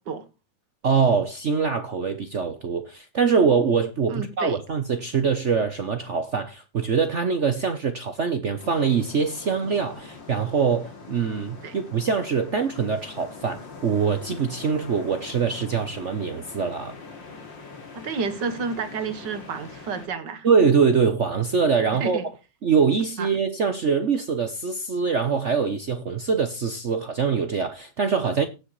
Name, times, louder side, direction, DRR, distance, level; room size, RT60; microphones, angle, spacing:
voice 1, 0.8-16.9 20.4-22.2 22.6-28.5, right 5 dB, 50° right, 1.0 m, -23 dB
voice 2, 4.1-4.6 11.6-11.8 17.9-20.5 22.0-22.3 23.2-23.4, right 5 dB, 65° right, 2.1 m, -30 dB
sound 1, 8.6-20.1, left 4 dB, 75° left, 3.2 m, -43 dB
17.5 x 6.5 x 3.2 m
omnidirectional pair, 2.1 m